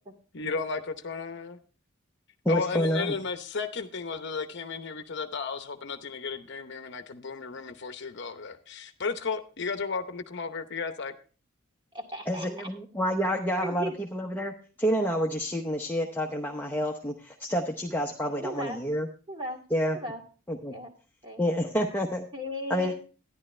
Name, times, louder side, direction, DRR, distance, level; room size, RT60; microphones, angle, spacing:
voice 1, 0.3-1.6 2.5-11.1, left 5 dB, 55° left, 8 dB, 0.8 m, -34 dB
voice 2, 2.4-3.1 12.3-19.1 19.7-20.0 20.5-20.7 21.4-22.3 22.7-22.9, equal, 10° left, 1 dB, 0.8 m, -28 dB
voice 3, 11.9-12.7 13.6-14.0 18.4-18.8 19.3-19.6 19.9-20.2 20.7-20.9 21.2-21.4 22.3-22.9, equal, 20° right, 1 dB, 2.2 m, -36 dB
12.5 x 10.5 x 3.2 m, 0.38 s
head